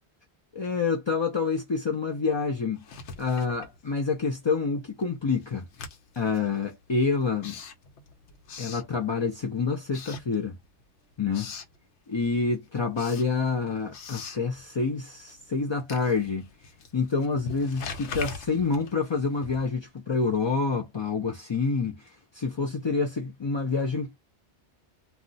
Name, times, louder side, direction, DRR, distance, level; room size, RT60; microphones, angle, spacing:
voice 1, 0.5-2.8 3.2-5.7 6.2-7.6 8.6-10.6 11.2-11.5 12.1-16.5 16.9-24.2, left 4 dB, 45° left, 0.3 m, -27 dB
Writing, 2.8-4.4 4.7-9.5 9.8-10.8 11.1-11.8 12.2-19.9, left 4 dB, 85° left, 1.0 m, -43 dB
2.4 x 2.1 x 3.9 m
omnidirectional pair, 1.2 m